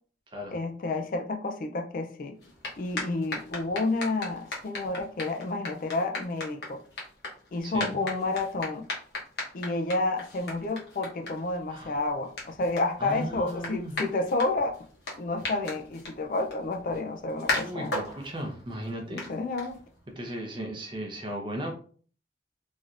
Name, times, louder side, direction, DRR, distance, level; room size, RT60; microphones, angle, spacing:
voice 1, 0.5-2.4 2.8-6.8 7.5-8.9 9.5-14.8 15.2-18.0 19.1-19.8, left 2 dB, 45° left, 4 dB, 0.3 m, -30 dB
sound 1, 2.4-20.1, left 2 dB, 65° left, 1.0 m, -38 dB
voice 2, 7.6-8.0 11.7-12.0 13.0-13.9 17.5-19.3 20.2-21.7, equal, 25° right, 1 dB, 0.6 m, -36 dB
3.2 x 2.7 x 2.4 m, 0.43 s
head